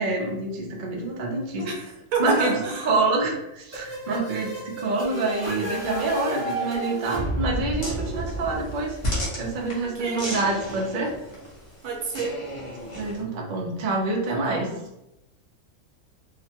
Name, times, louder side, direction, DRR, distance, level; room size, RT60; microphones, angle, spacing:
voice 1, 0.0-1.7 2.2-2.5 2.8-11.1 13.0-14.7, right 3 dB, 65° right, 0 dB, 0.5 m, -27 dB
voice 2, 2.1-2.9 9.8-10.3 11.8-12.4 14.3-14.7, right 3 dB, 80° right, 0 dB, 1.2 m, -29 dB
sound 1, 3.7-9.4, right 1 dB, 15° right, 0.7 m, -32 dB
sound 2, 7.8-13.2, equal, 30° left, 0.6 m, -34 dB
2.9 x 2.1 x 2.8 m, 0.89 s
omnidirectional pair, 1.6 m